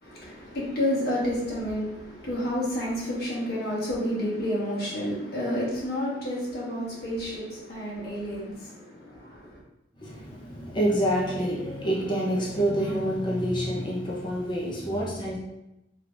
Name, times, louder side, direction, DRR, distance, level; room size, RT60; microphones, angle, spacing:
voice 1, 0.0-9.6, equal, 55° left, -6 dB, 1.5 m, -30 dB
voice 2, 10.0-15.4, equal, 25° left, -5 dB, 0.9 m, -27 dB
5.0 x 3.2 x 2.6 m, 0.89 s
head